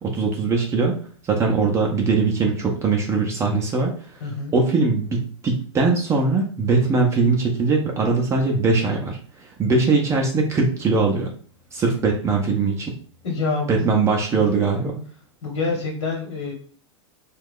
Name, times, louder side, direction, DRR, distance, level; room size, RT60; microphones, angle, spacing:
voice 1, 0.0-1.0 1.2-11.3 11.7-12.9 13.7-15.0, right 4 dB, 20° right, 1 dB, 0.5 m, -21 dB
voice 2, 4.2-4.5 13.2-13.9 14.3-14.4 15.4-16.5, left 4 dB, 70° left, 0 dB, 1.2 m, -26 dB
2.9 x 2.3 x 3.6 m, 0.43 s
supercardioid pair, 140°, 15 cm